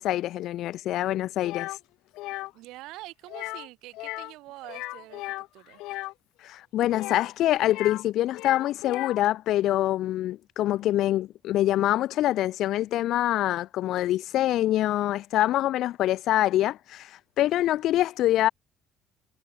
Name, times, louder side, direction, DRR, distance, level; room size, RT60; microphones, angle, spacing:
voice 1, 0.0-1.8 6.4-18.5, left 14 dB, 55° left, 0.4 m, -25 dB
sound 1, 1.4-1.8 2.1-2.5 3.3-3.7 3.9-4.3 4.6-6.1 6.9-8.0 8.3-9.3, left 19 dB, 85° left, 0.7 m, -36 dB
voice 2, 2.5-5.8 10.7-10.9, right 18 dB, 80° right, 7.0 m, -45 dB
cardioid pair, 175°, 0 cm